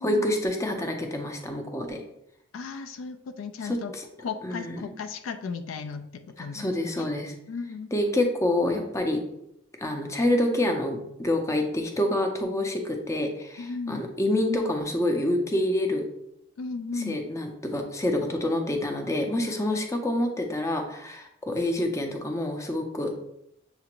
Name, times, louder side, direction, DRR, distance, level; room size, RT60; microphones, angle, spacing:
voice 1, 0.0-2.0 3.6-4.0 4.4-4.8 6.5-7.3 7.9-9.2 9.8-16.0 17.0-23.1, left 1 dB, 15° left, 4 dB, 0.5 m, -27 dB
voice 2, 2.5-3.9 4.2-6.6 7.0-7.1 7.5-8.0 13.6-14.0 16.6-17.2 19.7-19.8, left 4 dB, 70° left, 8 dB, 0.3 m, -35 dB
6.7 x 2.5 x 2.9 m, 0.78 s
head